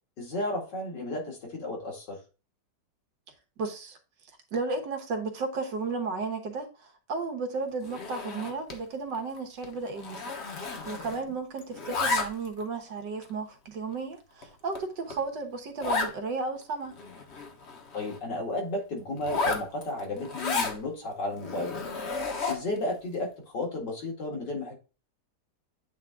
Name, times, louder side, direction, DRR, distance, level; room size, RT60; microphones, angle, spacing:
voice 1, 0.2-2.2 17.9-21.7 22.5-24.7, left 2 dB, 75° left, 2.8 m, -33 dB
voice 2, 3.6-4.0 4.5-10.3 10.9-17.0, right 4 dB, 80° right, 1.8 m, -34 dB
Zipper (clothing), 7.8-8.8 9.1-9.4 9.6-11.3 11.6-12.6 13.2-13.3 13.9-14.0 14.4-14.5 14.7-14.8 15.1-15.2 15.8-16.1 16.6-16.7 16.9-18.2 19.2-20.8 21.4-22.8, left 4 dB, 45° left, 1.2 m, -32 dB
8.7 x 3.5 x 3.6 m
omnidirectional pair, 1.9 m